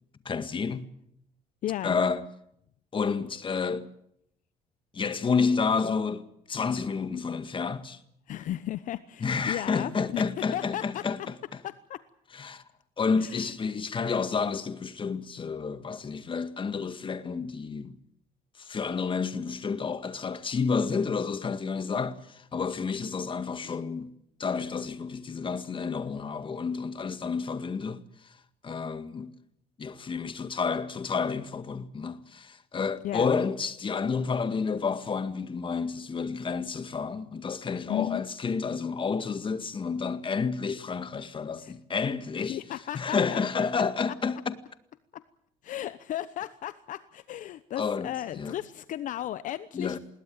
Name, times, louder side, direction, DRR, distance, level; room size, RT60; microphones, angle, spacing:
voice 1, 0.3-0.9 1.8-2.3 2.9-3.9 4.9-8.0 9.2-11.6 12.3-12.6 13.0-18.0 18.6-28.4 28.6-29.3 29.8-42.6 42.9-44.6 47.8-48.6 49.7-50.0, left 5 dB, 35° left, 1.9 m, -30 dB
voice 2, 1.6-2.0 8.3-10.2 10.5-11.0 11.6-12.0 13.2-13.4 23.6-23.8 33.0-33.3 37.9-38.2 41.6-41.7 42.5-43.4 43.7-44.1 45.1-45.2 45.6-50.0, left 12 dB, 60° left, 0.9 m, -35 dB
21.0 x 18.5 x 9.0 m
supercardioid pair, 80°, 15 cm